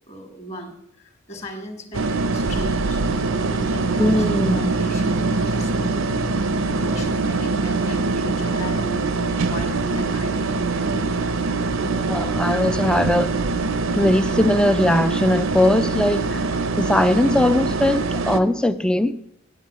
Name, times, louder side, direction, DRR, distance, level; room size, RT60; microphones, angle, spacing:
voice 1, 0.1-6.0 6.7-10.4, right 1 dB, 30° left, 1.5 m, -36 dB
sound 1, 1.9-18.4, right 3 dB, 70° right, 0.7 m, -23 dB
voice 2, 4.0-4.8 10.7-11.2 11.7-13.3 14.0-16.5 16.8-19.1, left 1 dB, 5° left, 0.3 m, -20 dB
9.1 x 8.3 x 7.3 m
head